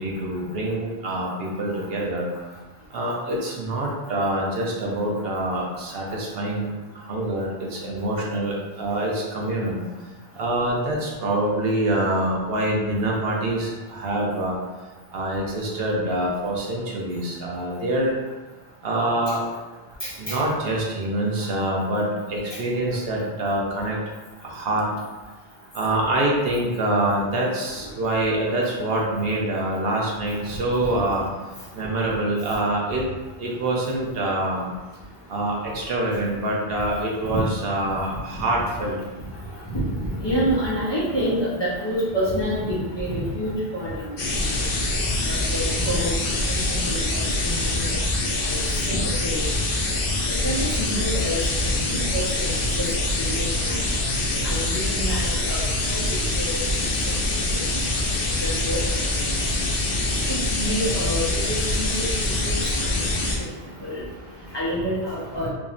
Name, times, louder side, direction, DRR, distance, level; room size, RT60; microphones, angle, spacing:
voice 1, 0.0-2.3 2.9-6.7 6.9-9.8 10.4-14.6 15.1-18.2 18.8-19.4 20.2-24.0 24.4-24.9 25.7-31.2 31.7-33.0 33.4-34.7 35.3-39.0 62.5-64.6, right 1 dB, 70° right, -2 dB, 0.9 m, -25 dB
voice 2, 20.0-20.4 31.8-31.9 37.3-37.4 39.7-44.1 44.5-44.6 45.3-48.0 48.4-49.5 50.4-52.9 53.2-53.8 54.4-56.5 57.3-57.4 57.9-58.0 58.4-58.8 60.3-63.0 63.8-64.0 64.5-65.5, equal, 25° left, -9 dB, 0.9 m, -28 dB
sound 1, 44.2-63.4, left 2 dB, 65° left, 0.8 m, -24 dB
3.6 x 3.1 x 2.5 m, 1.2 s
omnidirectional pair, 1.0 m